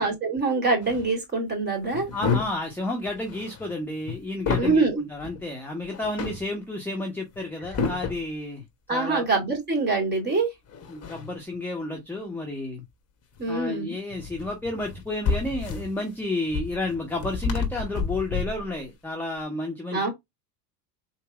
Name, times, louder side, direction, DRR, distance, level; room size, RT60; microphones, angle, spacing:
voice 1, 0.0-2.1 4.6-5.0 8.9-10.5 13.4-14.0 19.9-20.1, right 3 dB, 20° right, 2.5 m, -24 dB
sound 1, 0.8-1.1 1.9-2.7 3.0-4.8 5.2-5.4 5.8-6.5 7.3-8.3 10.7-11.6 13.4-13.6 14.1-18.8, left 5 dB, 30° left, 1.2 m, -31 dB
voice 2, 2.1-8.6 8.9-9.3 10.9-12.8 13.5-20.1, left 2 dB, 5° left, 0.9 m, -31 dB
4.0 x 3.0 x 2.3 m
supercardioid pair, 110°, 50 cm